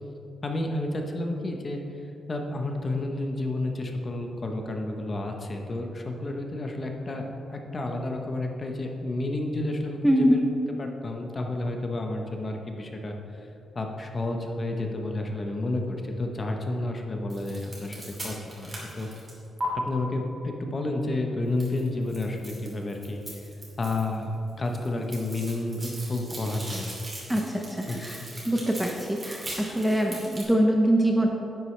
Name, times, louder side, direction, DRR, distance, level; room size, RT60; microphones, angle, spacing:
voice 1, 0.4-1.8 2.3-10.4 10.8-13.2 13.7-19.1 19.7-23.2 23.8-26.9 27.9-28.1, left 2 dB, 25° left, 3 dB, 0.8 m, -31 dB
voice 2, 10.0-10.5 27.3-28.2 28.5-31.3, equal, 5° right, 1 dB, 0.6 m, -23 dB
sound 1, 17.3-19.7 21.6-24.2 24.5-30.4, right 1 dB, 25° right, 2.2 m, -40 dB
10.5 x 8.2 x 3.3 m, 2.9 s
wide cardioid pair, 160°, 0 cm